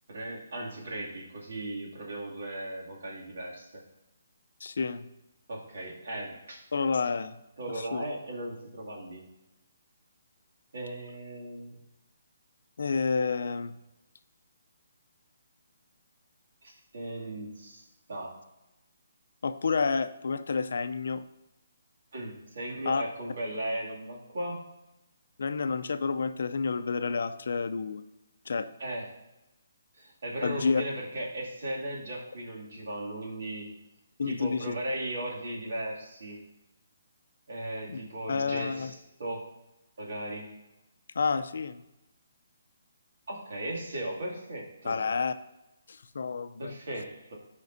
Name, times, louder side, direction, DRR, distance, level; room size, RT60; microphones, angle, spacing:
voice 1, 0.1-3.8 5.5-6.6 7.6-9.3 10.7-11.8 16.6-17.8 18.1-18.4 22.1-24.6 28.8-29.2 30.0-33.7 34.3-36.5 37.5-39.5 40.0-40.6 43.3-45.0 46.6-47.4, right 1 dB, 65° right, -3 dB, 2.5 m, -37 dB
voice 2, 4.6-5.1 6.7-7.4 7.8-8.0 12.8-13.8 19.4-21.2 22.9-23.0 25.4-28.0 28.5-28.7 30.4-30.8 34.2-34.7 37.9-38.0 38.3-38.9 41.1-41.8 44.8-45.3 45.9-46.7, left 5 dB, 70° left, 11 dB, 0.5 m, -29 dB
13.5 x 5.2 x 2.7 m, 0.95 s
hypercardioid pair, 155°, 0 cm